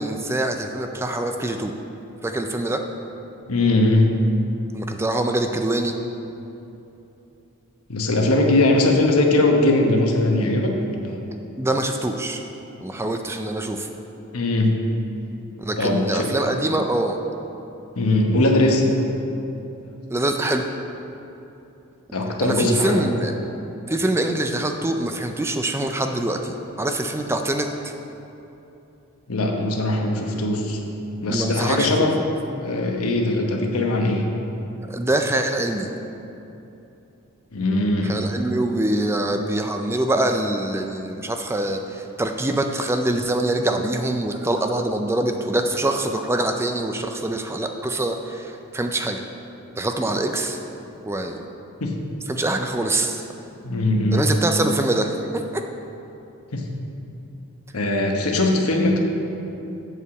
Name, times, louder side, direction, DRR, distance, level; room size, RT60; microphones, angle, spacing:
voice 1, 0.0-1.7 2.2-2.8 4.7-5.9 11.6-12.4 12.8-13.9 15.6-17.2 20.1-20.7 22.4-23.3 23.9-27.9 31.3-32.1 34.9-35.9 38.0-49.2 49.8-50.6 51.0-51.5 52.3-53.2 54.1-55.6, right 1 dB, 10° right, 5 dB, 0.4 m, -24 dB
voice 2, 3.5-4.1 7.9-11.2 14.3-14.8 15.8-16.3 18.0-18.8 22.1-23.1 29.3-30.8 31.2-32.1 32.6-34.3 37.5-38.1 51.8-51.9 53.6-54.2 56.5-56.7 57.7-59.0, left 2 dB, 75° left, 1 dB, 1.1 m, -20 dB
8.2 x 4.8 x 7.1 m, 2.9 s
head